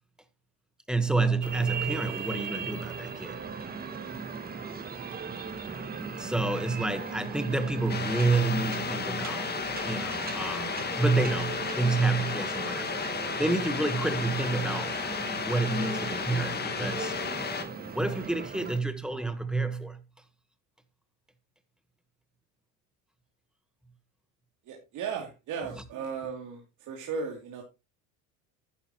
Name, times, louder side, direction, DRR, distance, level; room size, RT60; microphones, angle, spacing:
voice 1, 0.9-3.4 6.2-9.6 9.8-13.0 13.4-17.1 17.9-20.0, right 3 dB, ahead, 1.2 m, -29 dB
sound 1, 1.4-18.8, right 5 dB, 25° right, 1.5 m, -38 dB
sound 2, 7.9-17.6, left 5 dB, 30° left, 1.8 m, -33 dB
voice 2, 24.7-27.6, right 5 dB, 60° right, 2.9 m, -36 dB
11.5 x 9.3 x 3.0 m
cardioid pair, 120°, 35 cm